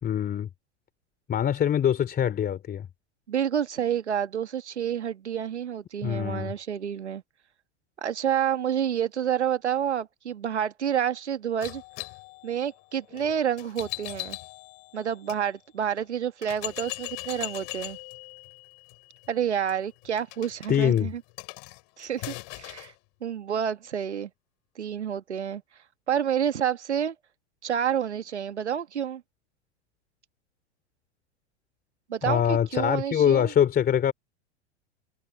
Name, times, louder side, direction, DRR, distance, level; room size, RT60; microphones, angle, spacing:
voice 1, 0.0-0.5 1.3-2.9 6.0-6.5 20.7-21.1 32.2-34.1, left 9 dB, 30° left, 3.3 m, -24 dB
voice 2, 3.3-7.2 8.0-11.8 12.4-14.4 14.9-18.0 19.3-21.2 22.0-22.9 23.2-24.3 24.8-25.6 26.1-27.2 27.6-29.2 32.1-33.5, right 9 dB, 80° right, 1.8 m, -29 dB
sound 1, 11.6-15.4 16.0-16.1 16.4-22.9, left 37 dB, 50° left, 5.4 m, -40 dB
hypercardioid pair, 95°, 34 cm